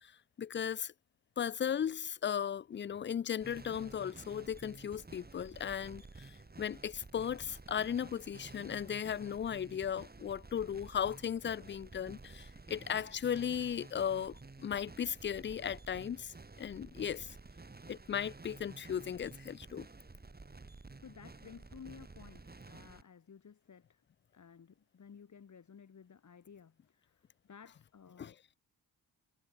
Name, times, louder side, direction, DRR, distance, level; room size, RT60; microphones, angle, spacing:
voice 1, 0.4-0.9 1.4-17.3 17.9-19.9 28.2-28.3, left 8 dB, 30° left, 0.5 m, -36 dB
sound 1, 3.4-23.0, right 3 dB, 25° right, 6.1 m, -52 dB
voice 2, 21.0-24.0 24.3-28.4, left 6 dB, 50° left, 3.5 m, -55 dB
cardioid pair, 70°, 38 cm